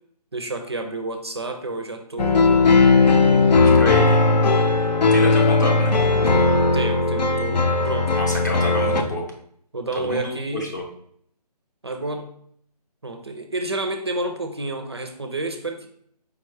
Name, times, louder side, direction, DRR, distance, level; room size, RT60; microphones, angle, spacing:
voice 1, 0.3-2.7 3.0-3.8 5.2-5.3 6.3-8.4 9.7-10.7 11.8-12.3 13.0-15.9, right 2 dB, 40° right, 5 dB, 0.4 m, -30 dB
sound 1, 2.2-9.0, left 3 dB, 85° left, 0.7 m, -17 dB
voice 2, 3.5-4.2 5.1-6.0 8.2-9.2 9.9-10.8, left 1 dB, 25° left, -1 dB, 0.7 m, -29 dB
4.8 x 2.2 x 4.7 m, 0.66 s
hypercardioid pair, 175°, 21 cm